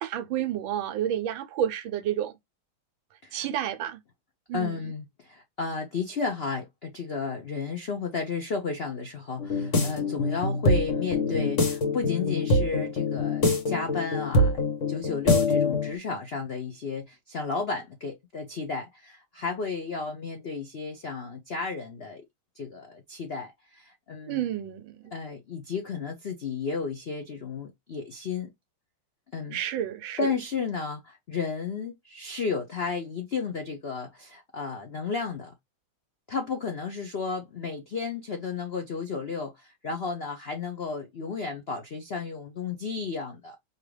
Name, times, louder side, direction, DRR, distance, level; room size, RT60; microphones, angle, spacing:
voice 1, 0.0-2.3 3.3-4.0 4.5-4.9 24.3-25.1 29.5-30.3, right 10 dB, 75° right, 1.4 m, -30 dB
voice 2, 4.5-22.2 22.5-24.5 25.1-28.5 29.3-29.6 30.2-35.5 36.3-43.6, left 5 dB, 75° left, 0.5 m, -33 dB
sound 1, 9.4-15.9, left 2 dB, 40° left, 1.4 m, -25 dB
4.5 x 2.9 x 3.1 m
omnidirectional pair, 2.2 m